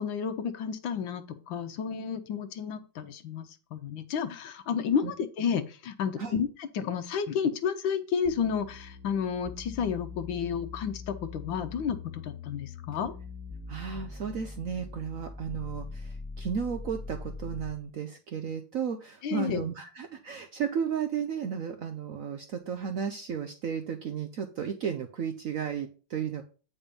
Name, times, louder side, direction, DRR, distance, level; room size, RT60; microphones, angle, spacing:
voice 1, 0.0-13.1 19.2-19.6, left 7 dB, 70° left, 9 dB, 1.4 m, -31 dB
sound 1, 8.2-17.8, left 3 dB, 10° right, 0.9 m, -42 dB
voice 2, 13.7-26.4, right 7 dB, 80° right, 7 dB, 0.7 m, -34 dB
8.7 x 4.3 x 5.2 m, 0.37 s
omnidirectional pair, 2.3 m